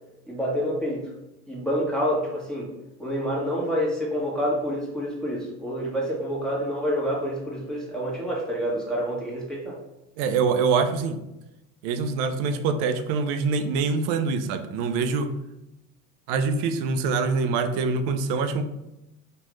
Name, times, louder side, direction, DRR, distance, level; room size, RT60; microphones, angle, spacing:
voice 1, 0.3-1.1 1.5-2.7 3.0-9.8, equal, ahead, -5 dB, 1.3 m, -28 dB
voice 2, 10.2-11.2 11.8-15.4 16.3-18.6, right 4 dB, 65° right, 8 dB, 0.6 m, -24 dB
3.1 x 2.5 x 3.2 m, 0.91 s
hypercardioid pair, 60°, 47 cm